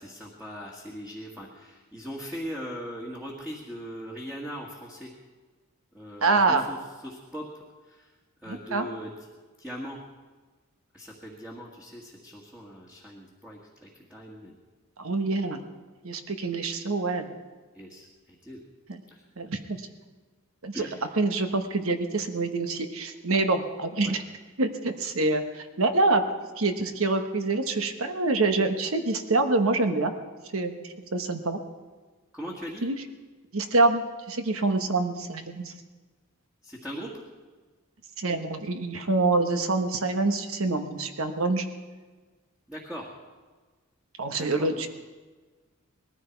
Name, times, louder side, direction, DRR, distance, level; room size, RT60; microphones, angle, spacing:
voice 1, 0.0-5.1 5.9-6.8 7.0-7.5 7.9-8.1 8.4-9.1 9.6-10.0 10.9-14.6 17.7-18.1 18.4-18.6 19.1-19.2 20.7-21.1 24.0-24.2 32.3-32.8 36.6-37.2 42.7-43.1 44.3-44.8, equal, 5° right, -3 dB, 1.7 m, -40 dB
voice 2, 6.2-6.6 8.5-8.9 15.0-15.6 16.0-17.3 18.9-19.0 19.4-19.8 20.6-20.8 21.2-24.2 24.6-26.2 26.6-30.1 30.5-30.8 31.1-31.6 32.8-33.0 33.5-35.7 38.2-41.6 44.2-44.9, right 3 dB, 70° right, 7 dB, 1.2 m, -26 dB
20.0 x 14.5 x 4.6 m, 1.4 s
head